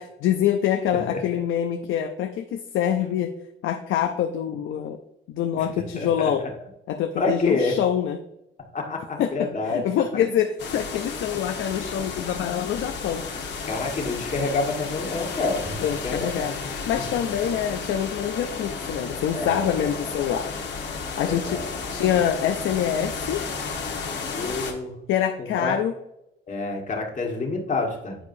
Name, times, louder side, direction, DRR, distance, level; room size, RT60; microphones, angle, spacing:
voice 1, 0.0-3.3 3.6-5.0 5.3-6.4 6.9-8.2 9.2-13.2 15.8-16.5 16.9-20.5 21.2-21.6 21.9-23.5 25.1-25.9, left 9 dB, 80° left, 5 dB, 0.5 m, -25 dB
voice 2, 1.1-1.4 5.5-5.6 5.9-6.3 7.2-7.7 8.7-9.8 13.7-16.7 19.3-19.8 21.2-22.2 24.3-24.9 25.5-25.8 26.5-28.2, left 3 dB, 40° left, 0 dB, 1.7 m, -28 dB
sound 1, 10.6-24.7, left 4 dB, 65° left, 1.3 m, -33 dB
8.8 x 4.7 x 2.7 m, 0.83 s
cardioid pair, 90°, 20 cm